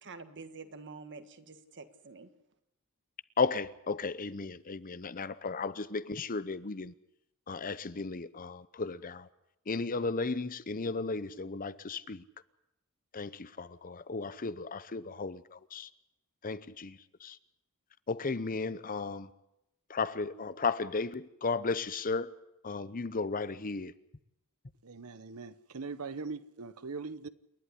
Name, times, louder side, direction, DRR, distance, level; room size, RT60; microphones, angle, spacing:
voice 1, 0.0-2.3, right 4 dB, 55° right, 1.7 m, -47 dB
voice 2, 3.4-6.9 7.5-9.3 9.7-12.2 13.1-15.9 16.4-17.4 18.1-19.3 19.9-22.3 22.6-23.9, left 4 dB, 40° left, 0.8 m, -34 dB
voice 3, 24.8-27.3, right 4 dB, 75° right, 0.9 m, -41 dB
28.5 x 11.5 x 9.8 m
head